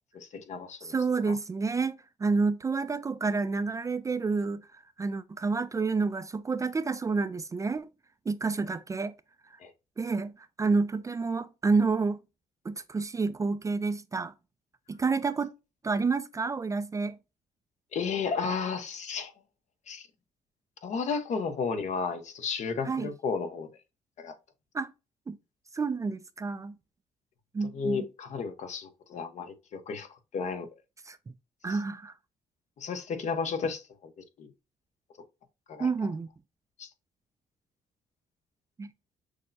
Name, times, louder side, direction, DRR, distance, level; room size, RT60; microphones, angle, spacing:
voice 1, 0.1-0.9 1.3-1.4 9.6-9.7 17.9-19.3 19.9-20.1 20.8-23.7 24.2-24.3 27.7-30.1 30.3-30.7 31.7-31.8 32.8-34.1 34.4-34.5 35.7-35.9 36.8-36.9, left 5 dB, 60° left, 0.9 m, -33 dB
voice 2, 0.8-4.6 5.0-7.9 8.3-9.1 10.0-10.3 10.6-12.2 12.6-14.3 14.9-15.5 15.8-17.2 22.8-23.1 24.7-24.9 25.3-25.4 25.7-26.7 27.5-28.0 31.1-31.2 31.6-32.1 35.8-36.3 38.8-38.9, right 4 dB, 25° right, 0.3 m, -29 dB
6.3 x 2.1 x 2.6 m
cardioid pair, 90°, 13 cm